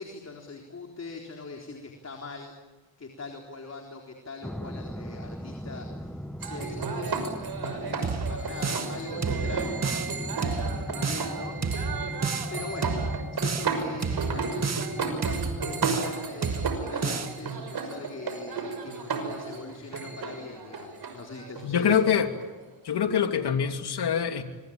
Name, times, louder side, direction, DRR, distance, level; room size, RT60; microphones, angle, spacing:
voice 1, 0.0-2.5 3.0-7.4 7.6-8.0 8.3-9.8 10.4-11.6 11.8-12.2 12.5-13.0 13.3-22.1, left 4 dB, 35° left, 2 dB, 4.0 m, -41 dB
sound 1, 4.4-16.2, left 1 dB, ahead, 1.1 m, -39 dB
sound 2, 6.4-22.7, right 5 dB, 55° right, 6.1 m, -33 dB
sound 3, 8.0-9.0 9.2-10.1 10.4-11.3 11.6-12.5 12.8-13.7 14.0-14.9 15.2-16.2 16.4-17.3, right 5 dB, 35° right, 2.1 m, -30 dB
voice 2, 21.6-22.3 22.8-24.4, left 7 dB, 60° left, 6 dB, 2.9 m, -24 dB
25.5 x 25.0 x 8.8 m, 1.2 s
cardioid pair, 105°, 45 cm